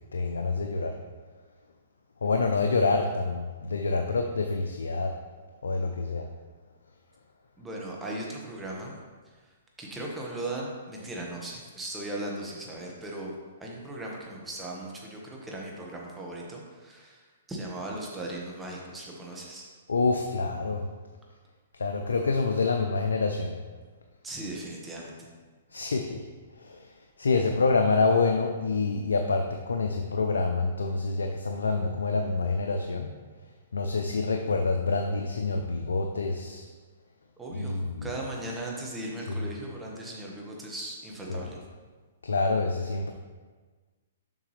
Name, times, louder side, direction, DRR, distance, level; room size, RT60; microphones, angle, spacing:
voice 1, 0.1-0.9 2.2-5.1 5.6-6.3 19.9-20.8 21.8-23.5 25.7-26.2 26.7-26.8 27.2-33.1 33.7-36.7 37.5-38.1 41.3-41.4 42.2-43.1, left 3 dB, 90° left, 4 dB, 0.5 m, -27 dB
voice 2, 7.6-9.0 9.8-13.3 13.6-17.2 17.5-19.7 24.2-25.3 37.4-41.6, right 1 dB, 10° right, -2 dB, 1.4 m, -38 dB
7.2 x 5.8 x 3.2 m, 1.4 s
hypercardioid pair, 135°, 0 cm